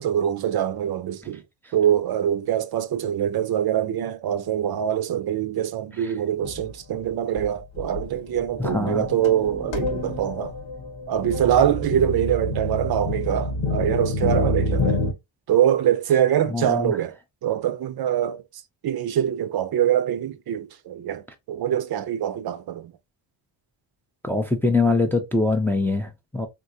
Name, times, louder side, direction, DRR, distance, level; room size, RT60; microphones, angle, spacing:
voice 1, 0.0-1.4 1.7-10.5 11.1-15.0 15.5-17.2 17.4-18.4 18.8-22.9, right 10 dB, 55° right, 0.5 m, -24 dB
sound 1, 6.4-6.7 7.4-7.5 7.8-15.1, left 2 dB, 90° left, 1.1 m, -27 dB
voice 2, 8.6-9.0 16.5-17.0 24.2-26.5, left 3 dB, 5° left, 0.4 m, -23 dB
3.6 x 2.5 x 2.6 m
cardioid pair, 115°, 45 cm